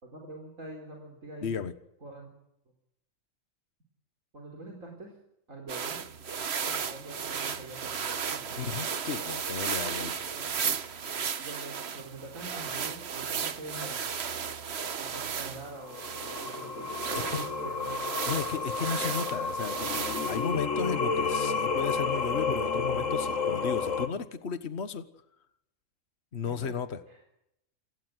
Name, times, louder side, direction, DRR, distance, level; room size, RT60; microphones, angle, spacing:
voice 1, 0.0-1.6 2.0-2.3 4.3-5.1 5.5-6.0 6.6-8.7 10.3-10.7 11.4-14.0 15.0-18.0 26.4-26.7 27.1-27.2, right 2 dB, 75° right, 0 dB, 4.5 m, -44 dB
voice 2, 1.4-1.7 8.6-10.2 17.3-17.5 18.3-25.1 26.3-27.0, left 6 dB, 55° left, 11 dB, 1.6 m, -34 dB
sound 1, 5.7-20.5, right 6 dB, 55° right, 1.3 m, -35 dB
Singing, 15.9-24.1, left 4 dB, 75° left, 2.2 m, -31 dB
29.0 x 17.0 x 7.9 m, 0.82 s
omnidirectional pair, 1.4 m